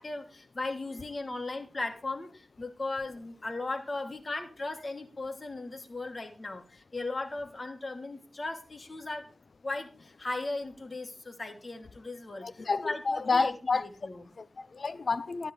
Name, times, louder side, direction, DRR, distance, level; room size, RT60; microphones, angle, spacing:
voice 1, 0.0-9.3 9.6-14.2, left 2 dB, 50° left, 2.7 m, -37 dB
voice 2, 12.4-14.1 14.4-15.5, left 4 dB, 70° left, 0.8 m, -30 dB
13.0 x 10.0 x 3.3 m
cardioid pair, 40°, 0 cm